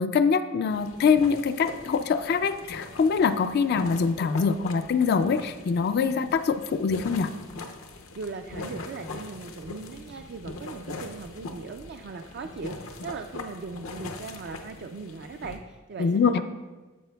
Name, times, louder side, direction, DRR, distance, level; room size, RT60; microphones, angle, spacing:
voice 1, 0.0-7.3 16.0-16.4, left 5 dB, 50° left, 10 dB, 0.3 m, -24 dB
sound 1, 0.7-15.6, left 3 dB, 85° left, 0.7 m, -41 dB
voice 2, 8.1-16.4, right 4 dB, 50° right, 5 dB, 0.4 m, -39 dB
14.5 x 5.0 x 2.3 m, 1.2 s
head